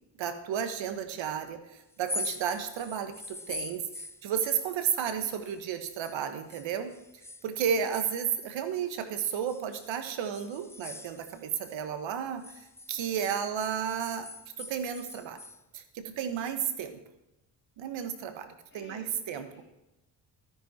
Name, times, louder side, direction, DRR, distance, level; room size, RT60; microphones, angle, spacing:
voice 1, 0.2-6.9 7.4-14.3 14.6-15.4 15.7-17.0 17.8-19.5, right 8 dB, 80° right, 9 dB, 1.6 m, -33 dB
sound 1, 1.9-6.2 6.5-9.0 9.5-11.8 12.1-15.6, left 2 dB, 5° left, 0.4 m, -43 dB
voice 2, 18.7-19.6, left 2 dB, 25° left, -2 dB, 4.5 m, -51 dB
12.5 x 10.5 x 4.4 m, 0.94 s
cardioid pair, 95°, 46 cm